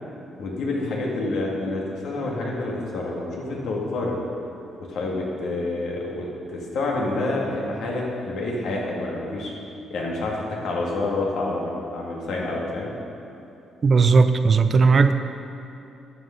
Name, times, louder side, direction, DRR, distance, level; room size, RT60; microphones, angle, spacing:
voice 1, 0.4-4.2 4.9-9.5 9.9-12.9, left 2 dB, 75° left, -2 dB, 1.9 m, -28 dB
voice 2, 13.8-15.1, right 4 dB, 40° right, 10 dB, 0.5 m, -16 dB
11.0 x 6.3 x 5.1 m, 2.8 s
cardioid pair, 90°, 0 cm